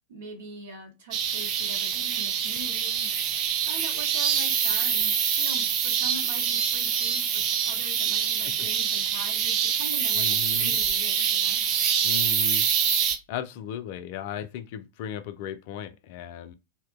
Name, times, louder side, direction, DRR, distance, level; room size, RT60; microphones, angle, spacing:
voice 1, 0.1-3.1 3.6-10.2 10.5-11.6, right 2 dB, 60° right, 1.1 m, -43 dB
sound 1, 1.1-13.2, right 8 dB, 40° right, 0.4 m, -25 dB
voice 2, 10.1-10.8 12.0-12.7 13.3-16.5, left 9 dB, 50° left, 0.3 m, -36 dB
2.7 x 2.2 x 2.5 m
figure-of-eight pair, 90°, 0 cm